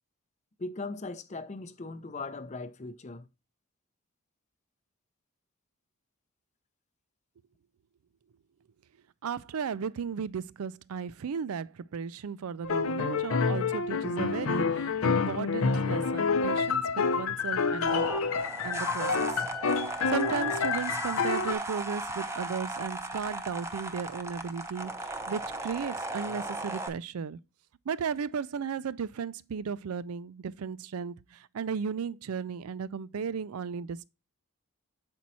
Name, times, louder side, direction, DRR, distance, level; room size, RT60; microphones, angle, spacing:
voice 1, 0.6-3.3, left 3 dB, 30° left, 0.5 m, -39 dB
voice 2, 9.2-18.1 18.6-19.3 20.1-27.4 27.9-34.1, right 6 dB, 80° right, 0.4 m, -35 dB
sound 1, 12.6-21.5, left 4 dB, 75° left, 0.6 m, -28 dB
sound 2, 17.9-26.9, right 2 dB, 10° right, 0.6 m, -36 dB
7.2 x 4.5 x 4.1 m
head